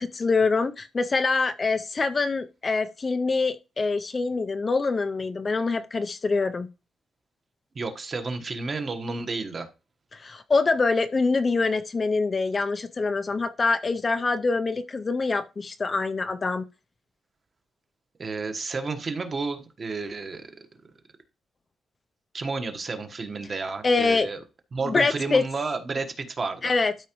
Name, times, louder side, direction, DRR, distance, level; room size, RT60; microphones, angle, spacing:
voice 1, 0.0-6.7 10.1-16.6 23.8-24.3 24.9-25.4 26.6-27.1, left 4 dB, 30° left, 0.5 m, -25 dB
voice 2, 7.7-9.7 18.2-20.5 22.3-24.4 24.7-26.7, right 3 dB, 30° right, 1.2 m, -31 dB
12.5 x 4.8 x 3.0 m
wide cardioid pair, 150°, 0 cm